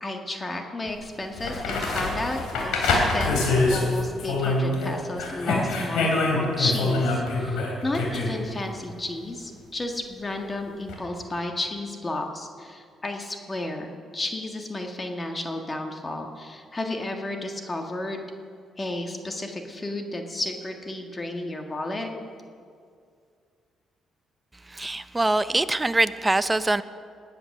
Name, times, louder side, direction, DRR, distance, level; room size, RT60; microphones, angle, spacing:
voice 1, 0.0-2.9 3.1-3.4 3.7-18.3 18.8-22.1, left 2 dB, 25° left, 3 dB, 1.6 m, -32 dB
sound 1, 0.9-1.0 1.4-4.9 5.2-8.3 10.9-11.0, left 2 dB, 90° left, 3.3 m, -25 dB
voice 2, 24.7-26.8, right 2 dB, 15° right, 13 dB, 0.6 m, -23 dB
20.0 x 9.2 x 6.5 m, 2.3 s
cardioid pair, 90°, 0 cm